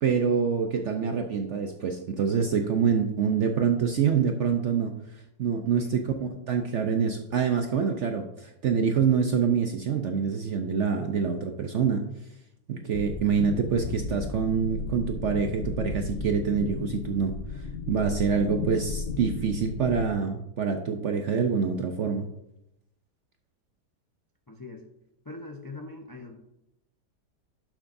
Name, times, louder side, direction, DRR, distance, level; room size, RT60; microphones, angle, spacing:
voice 1, 0.0-4.9 5.4-12.0 12.7-17.3 17.9-22.3, right 6 dB, 65° right, 5 dB, 0.7 m, -26 dB
sound 1, 12.9-20.1, left 5 dB, 65° left, 1.0 m, -35 dB
voice 2, 24.5-24.9 25.2-26.4, left 3 dB, 30° left, 2 dB, 0.4 m, -41 dB
11.5 x 7.3 x 2.6 m, 0.83 s
omnidirectional pair, 1.8 m